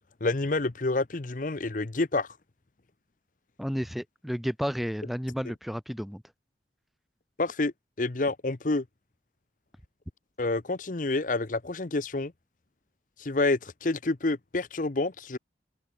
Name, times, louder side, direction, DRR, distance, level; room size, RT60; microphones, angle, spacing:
voice 1, 0.2-2.3 7.4-7.7 8.0-8.8 10.4-12.3 13.2-15.4, left 2 dB, 45° left, 0.8 m, -28 dB
voice 2, 3.6-6.2, equal, ahead, 0.9 m, -32 dB
open air
head